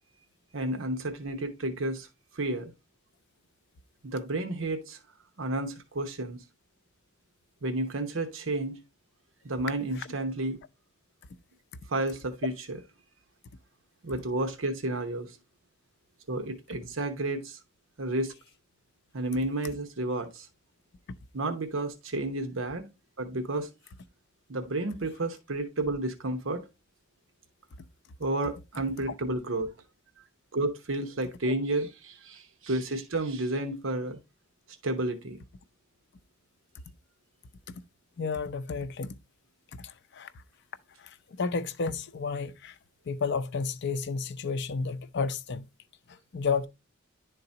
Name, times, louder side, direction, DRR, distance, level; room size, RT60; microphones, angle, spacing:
voice 1, 0.5-2.1 2.3-2.7 4.0-5.0 5.4-6.4 7.6-8.8 9.4-10.6 11.9-12.8 14.0-15.4 16.3-17.6 18.0-18.3 19.1-20.5 21.3-22.9 23.2-23.7 24.5-26.6 28.2-29.7 30.5-34.2 34.8-35.4, right 2 dB, 70° right, 1.0 m, -31 dB
voice 2, 38.2-39.1 39.8-40.3 41.0-42.7 43.1-45.7 46.1-46.7, left 5 dB, 55° left, 0.5 m, -32 dB
10.5 x 3.9 x 2.8 m
head